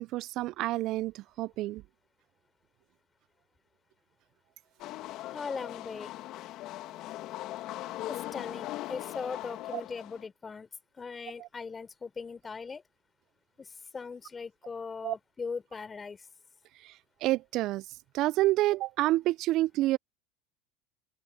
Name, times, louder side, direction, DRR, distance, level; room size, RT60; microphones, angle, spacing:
voice 1, 0.0-1.8 9.7-9.8 11.4-11.5 15.0-15.1 16.8-17.9 18.1-20.0, right 17 dB, 55° right, 0.4 m, -28 dB
sound 1, 4.8-10.3, left 15 dB, 55° left, 2.4 m, -40 dB
voice 2, 5.3-6.1 8.1-10.7 11.0-12.8 13.6-16.3, left 5 dB, 20° left, 4.5 m, -39 dB
open air
hypercardioid pair, 85°, 0 cm